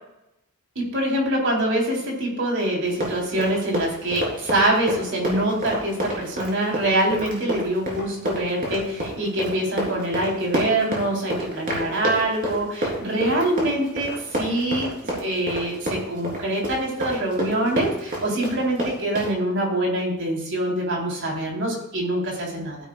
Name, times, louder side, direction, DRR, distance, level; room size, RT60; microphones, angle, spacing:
voice 1, 0.8-22.8, right 1 dB, 55° right, -1 dB, 3.7 m, -24 dB
Run, 2.8-19.3, right 1 dB, 40° right, 3.9 m, -28 dB
15.0 x 10.5 x 2.4 m, 0.82 s
head